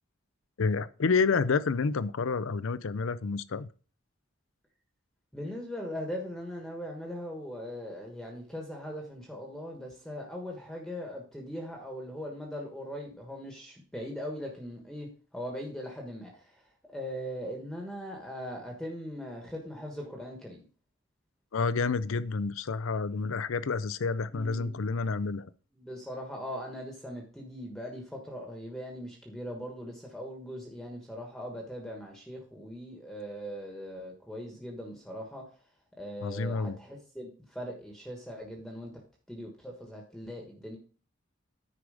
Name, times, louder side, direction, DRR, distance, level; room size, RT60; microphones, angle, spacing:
voice 1, 0.6-3.7 21.5-25.5 36.2-36.8, left 4 dB, 80° left, 0.5 m, -29 dB
voice 2, 5.3-16.5 16.9-20.6 24.3-24.7 25.7-35.4 36.0-39.0 39.3-40.8, equal, ahead, 1.3 m, -40 dB
9.9 x 4.8 x 4.9 m
head